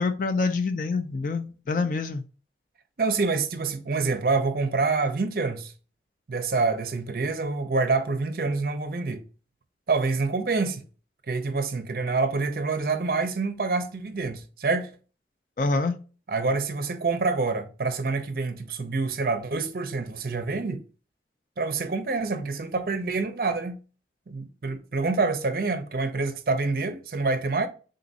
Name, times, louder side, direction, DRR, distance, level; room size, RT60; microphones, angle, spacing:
voice 1, 0.0-2.2 15.6-16.0, left 3 dB, 45° left, 0.4 m, -26 dB
voice 2, 3.0-5.7 6.3-9.2 9.9-10.8 11.3-14.9 16.3-20.8 21.6-23.8 24.3-27.7, right 3 dB, 55° right, 0.5 m, -27 dB
3.8 x 2.5 x 3.9 m
head